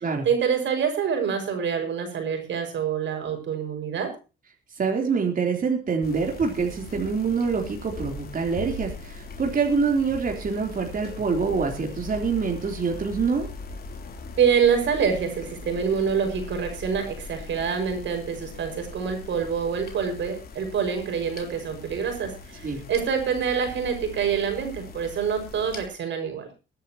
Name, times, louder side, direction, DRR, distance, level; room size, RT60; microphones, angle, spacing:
voice 1, 0.2-4.1 14.4-26.5, right 7 dB, 70° right, 5 dB, 5.9 m, -26 dB
voice 2, 4.7-13.5 22.6-22.8, right 5 dB, 45° right, 1 dB, 3.7 m, -25 dB
sound 1, 6.0-25.9, left 4 dB, 50° left, 3.3 m, -40 dB
22.5 x 10.5 x 3.0 m, 0.31 s
cardioid pair, 90°, 20 cm